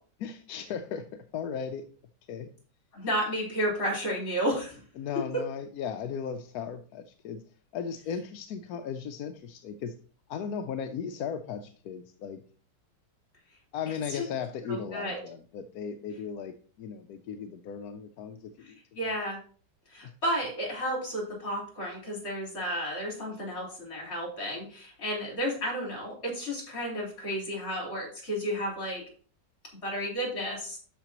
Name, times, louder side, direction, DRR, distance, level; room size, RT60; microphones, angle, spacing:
voice 1, 0.2-1.9 2.3-2.5 5.0-7.4 7.7-9.9 10.3-12.4 13.7-18.8 19.0-19.1 20.0-20.1, left 7 dB, 70° left, 6 dB, 1.0 m, -36 dB
voice 2, 2.9-4.7 14.1-14.2 14.7-15.2 18.7-19.4 19.9-29.0 29.8-30.8, equal, 50° left, -2 dB, 4.6 m, -32 dB
12.5 x 5.2 x 3.0 m, 0.41 s
omnidirectional pair, 1.9 m